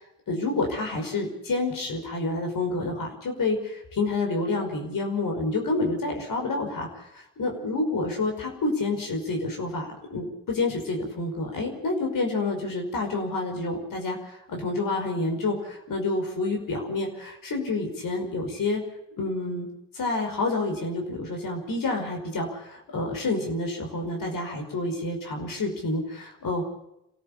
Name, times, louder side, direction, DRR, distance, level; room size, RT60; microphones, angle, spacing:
voice 1, 0.3-18.8 19.2-19.7 19.9-26.6, left 2 dB, 65° left, 2 dB, 5.6 m, -28 dB
27.0 x 14.0 x 8.6 m, 0.86 s
supercardioid pair, 45°, 36 cm